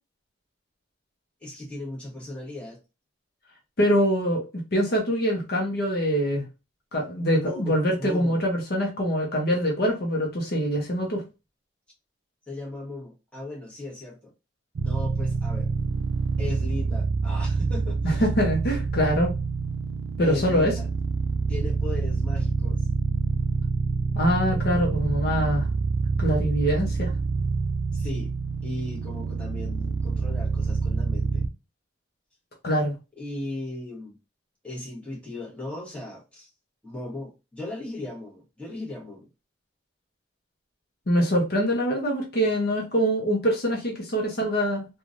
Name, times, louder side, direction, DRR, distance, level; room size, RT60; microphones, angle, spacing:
voice 1, 1.4-2.8 7.4-8.3 12.5-14.3 14.8-15.7 16.4-18.2 20.2-20.9 21.5-22.9 27.9-28.3 28.6-31.5 33.2-34.1 34.6-36.5 36.8-39.3, left 2 dB, 5° left, 1.1 m, -37 dB
voice 2, 3.8-6.5 6.9-11.2 18.0-19.3 20.2-20.7 24.2-25.7 26.2-27.1 32.6-33.0 41.1-44.9, equal, 55° left, 0.8 m, -24 dB
sound 1, 14.8-31.5, right 4 dB, 80° right, 0.4 m, -27 dB
3.1 x 2.3 x 2.5 m
head